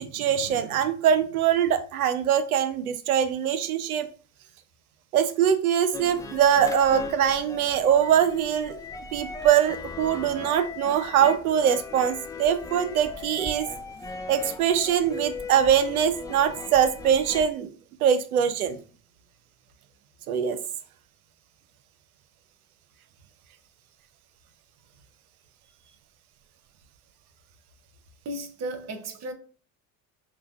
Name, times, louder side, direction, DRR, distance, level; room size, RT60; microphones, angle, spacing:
voice 1, 0.0-4.1 5.1-8.8 9.1-13.7 14.3-17.7 18.0-18.8 20.3-20.6, right 9 dB, 80° right, 0.6 m, -23 dB
sound 1, 5.9-17.5, left 4 dB, 10° left, 0.3 m, -37 dB
voice 2, 28.2-29.3, right 1 dB, 35° right, 0.8 m, -34 dB
5.5 x 2.2 x 2.3 m
figure-of-eight pair, 65°, 43 cm